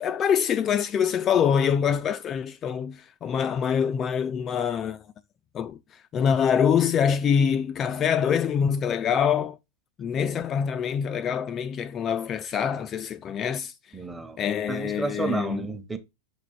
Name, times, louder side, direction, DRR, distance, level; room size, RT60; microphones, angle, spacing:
voice 1, 0.0-5.0 5.5-5.8 6.1-9.6 10.0-13.7 14.4-15.6, left 7 dB, 25° left, 0.3 m, -25 dB
voice 2, 13.9-14.4 14.7-16.0, right 4 dB, 10° right, 0.9 m, -31 dB
7.0 x 3.6 x 4.4 m
figure-of-eight pair, 90°, 0 cm